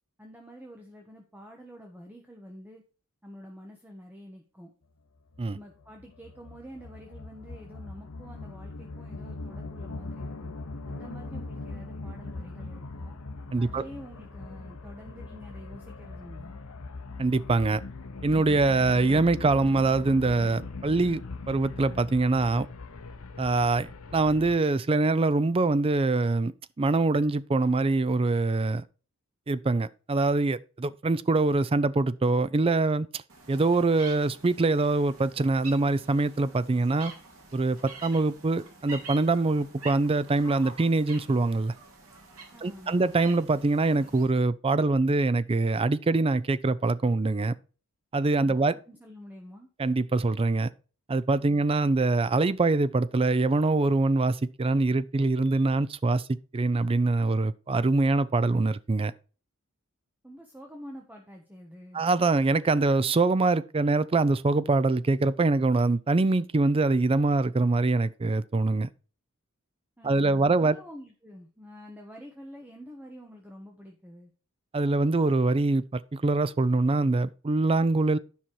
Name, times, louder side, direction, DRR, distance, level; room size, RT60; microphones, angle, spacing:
voice 1, 0.2-2.8 3.2-4.7 5.5-10.5 10.8-13.2 13.6-16.6 42.5-43.1 48.4-49.7 60.2-62.0 70.0-74.3, equal, 10° right, 1.2 m, -47 dB
sound 1, 5.3-24.6, left 3 dB, 80° left, 0.9 m, -40 dB
voice 2, 13.5-13.8 17.2-17.8 18.2-21.2 21.5-22.7 23.4-26.5 26.8-28.8 29.5-33.2 33.5-37.1 37.5-41.7 42.6-47.5 48.1-48.7 49.8-50.7 51.1-59.1 61.9-68.9 70.0-70.7 74.7-78.2, right 3 dB, 25° right, 0.4 m, -24 dB
sound 2, 33.3-44.2, right 3 dB, 85° right, 2.7 m, -47 dB
10.0 x 5.7 x 4.7 m
head